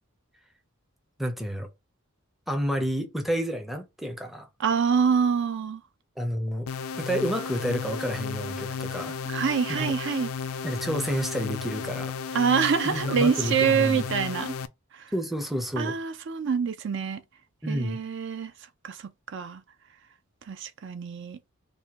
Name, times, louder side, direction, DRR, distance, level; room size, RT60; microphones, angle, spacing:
voice 1, 1.2-1.7 2.5-4.5 6.2-6.7 7.0-9.2 9.7-9.9 10.6-12.1 12.8-14.1 15.1-16.0 17.6-18.0, equal, ahead, 0.5 m, -30 dB
voice 2, 4.6-5.8 9.3-10.3 12.3-14.5 15.8-17.2 17.7-18.5 18.8-19.6 20.5-21.4, right 6 dB, 60° right, 0.4 m, -26 dB
sound 1, 6.7-14.7, left 6 dB, 75° left, 0.4 m, -34 dB
3.4 x 2.2 x 4.0 m
head